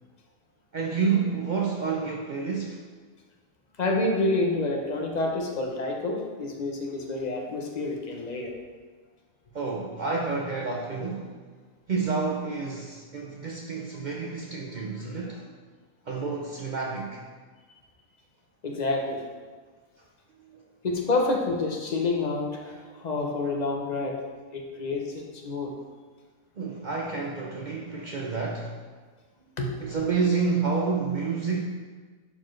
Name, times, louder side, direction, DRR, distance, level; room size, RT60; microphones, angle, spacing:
voice 1, 0.7-2.8 9.5-11.4 11.9-15.5 16.0-17.2 20.4-20.6 26.6-28.7 29.8-31.6, right 4 dB, 75° right, -1 dB, 0.4 m, -29 dB
voice 2, 3.8-8.5 18.6-19.2 20.8-24.2 24.5-25.7 29.6-29.7, left 2 dB, 40° left, 1 dB, 0.6 m, -28 dB
11.0 x 4.4 x 3.2 m, 1.5 s
omnidirectional pair, 1.7 m